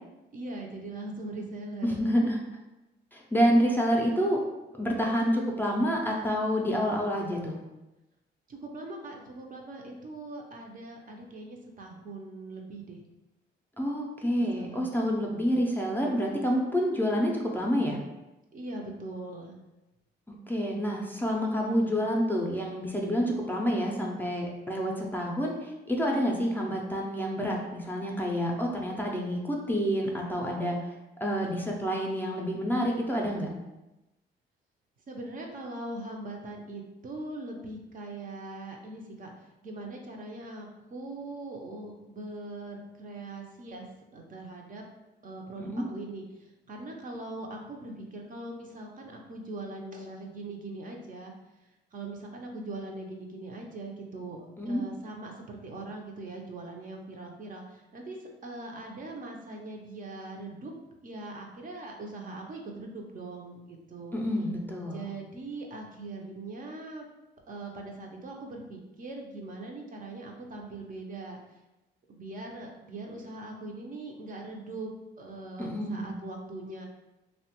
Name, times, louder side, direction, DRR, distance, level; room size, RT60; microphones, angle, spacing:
voice 1, 0.3-2.0 8.5-13.0 14.4-15.0 18.5-19.6 35.1-39.3 39.6-43.9 44.1-44.8 45.2-51.3 51.9-60.7 61.0-64.2 64.9-67.0 67.5-71.4 72.1-74.9 75.2-76.9, right 2 dB, 45° right, 1 dB, 0.5 m, -41 dB
voice 2, 1.8-2.4 3.1-4.4 4.8-7.6 13.8-18.0 20.5-30.8 31.2-33.5 45.6-45.8 54.6-54.8 64.1-65.1 75.6-76.1, equal, 10° left, -1 dB, 0.4 m, -28 dB
2.9 x 2.1 x 2.8 m, 0.99 s
cardioid pair, 90°, 20 cm